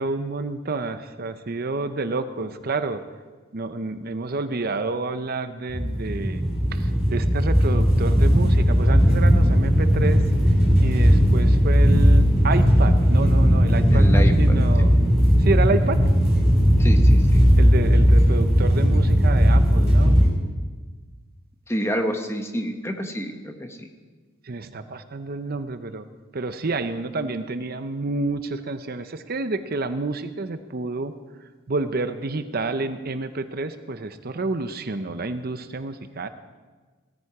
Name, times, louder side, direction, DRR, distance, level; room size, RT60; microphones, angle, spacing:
voice 1, 0.0-3.0 3.5-6.4 6.7-10.2 10.8-15.0 15.4-16.0 17.6-20.2 24.5-26.0 26.3-31.1 31.7-36.3, right 3 dB, 45° right, 10 dB, 0.7 m, -29 dB
sound 1, 5.7-20.3, equal, 5° right, 6.0 m, -17 dB
voice 2, 13.9-14.9 16.8-17.4 21.7-23.9, equal, 15° left, 5 dB, 1.1 m, -29 dB
17.5 x 14.0 x 4.9 m, 1.4 s
head